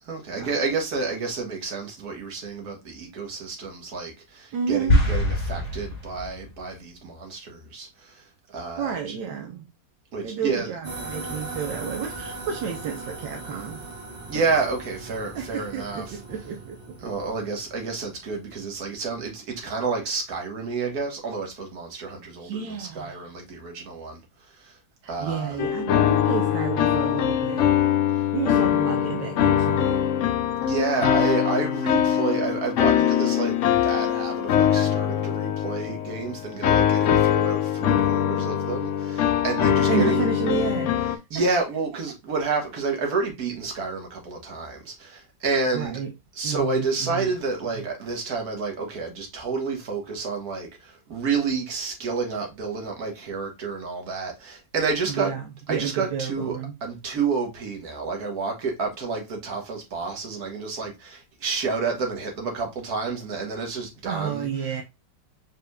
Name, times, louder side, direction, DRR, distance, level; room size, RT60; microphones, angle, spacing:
voice 1, 0.0-9.2 10.1-10.7 14.3-16.2 17.0-24.2 24.5-24.8 25.1-25.6 30.6-40.2 41.3-46.0 46.4-55.3 55.7-64.5, right 4 dB, 55° right, 1.9 m, -29 dB
voice 2, 4.5-5.0 8.8-9.7 10.2-13.8 14.4-14.5 15.3-17.0 22.4-23.3 25.0-27.8 28.3-30.1 39.9-41.0 41.3-41.4 45.7-46.1 46.4-47.4 47.7-47.9 55.1-56.8 64.1-64.8, right 7 dB, 80° right, 1.6 m, -31 dB
sound 1, 4.9-6.5, left 1 dB, 45° left, 2.4 m, -23 dB
sound 2, 10.8-18.5, right 3 dB, 40° right, 1.8 m, -39 dB
sound 3, 25.6-41.2, left 9 dB, 80° left, 0.6 m, -22 dB
5.0 x 4.2 x 2.3 m
omnidirectional pair, 1.9 m